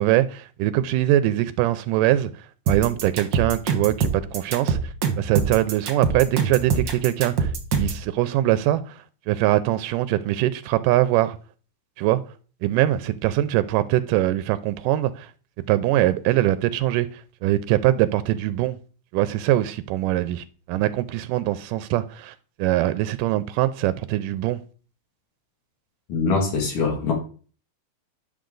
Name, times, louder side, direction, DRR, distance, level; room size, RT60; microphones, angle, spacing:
voice 1, 0.0-7.5 7.8-11.4 12.0-12.2 12.6-15.3 15.7-18.8 19.1-24.6, right 14 dB, 85° right, 2.2 m, -22 dB
sound 1, 2.7-8.0, right 5 dB, 55° right, 1.4 m, -24 dB
voice 2, 26.1-27.1, left 4 dB, 70° left, 3.7 m, -23 dB
10.5 x 6.6 x 3.8 m
omnidirectional pair, 3.8 m